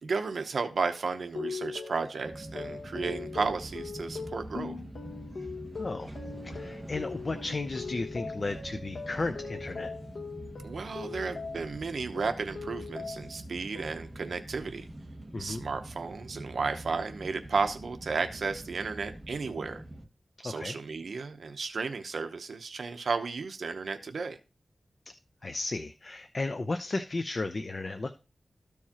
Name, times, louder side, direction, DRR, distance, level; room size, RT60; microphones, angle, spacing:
voice 1, 0.0-4.8 10.6-14.9 15.4-19.8 20.4-24.4, right 4 dB, 70° right, 0.8 m, -33 dB
sound 1, 1.4-11.8 12.2-13.4 13.8-14.3, left 4 dB, 80° left, 1.3 m, -41 dB
sound 2, 2.2-20.1, right 1 dB, 20° right, 1.2 m, -45 dB
voice 2, 5.8-6.1 6.4-9.9 15.3-15.6 20.4-20.7 25.4-28.1, left 3 dB, 40° left, 0.6 m, -34 dB
13.5 x 4.7 x 2.9 m
wide cardioid pair, 120°, 0 cm